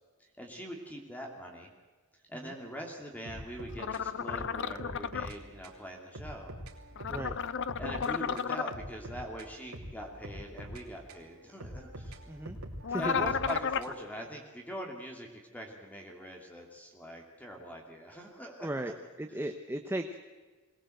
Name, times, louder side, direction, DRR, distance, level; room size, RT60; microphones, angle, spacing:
voice 1, 0.2-1.7 2.3-6.5 7.8-12.2 13.0-18.9, equal, 5° left, 1 dB, 2.7 m, -42 dB
sound 1, 3.3-5.4 5.6-5.8 6.1-8.1 8.4-11.3 11.6-14.1, equal, 80° right, 3.0 m, -44 dB
sound 2, 3.8-5.3 7.0-8.7 12.8-13.9, left 6 dB, 55° left, 0.6 m, -33 dB
voice 2, 12.3-12.6 12.9-13.2 18.6-20.2, right 1 dB, 10° right, 6 dB, 0.9 m, -36 dB
22.0 x 18.5 x 7.9 m, 1.3 s
head